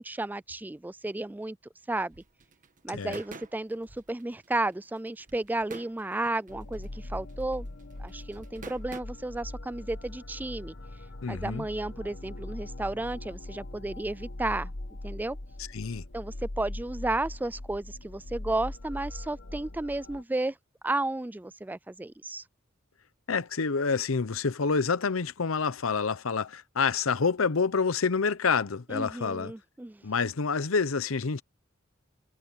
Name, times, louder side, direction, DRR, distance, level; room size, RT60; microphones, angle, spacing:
voice 1, 0.0-1.6 1.9-2.2 2.8-7.7 8.0-10.7 11.3-14.7 15.0-15.4 16.1-20.5 20.8-22.4 28.9-30.0, right 2 dB, 10° right, 0.3 m, -33 dB
sound 1, 2.1-9.0, right 3 dB, 40° right, 1.5 m, -48 dB
sound 2, 6.5-20.2, left 1 dB, 65° left, 1.3 m, -41 dB
voice 2, 11.2-11.7 15.6-16.0 23.3-29.5 30.0-31.4, left 5 dB, 80° left, 0.8 m, -28 dB
head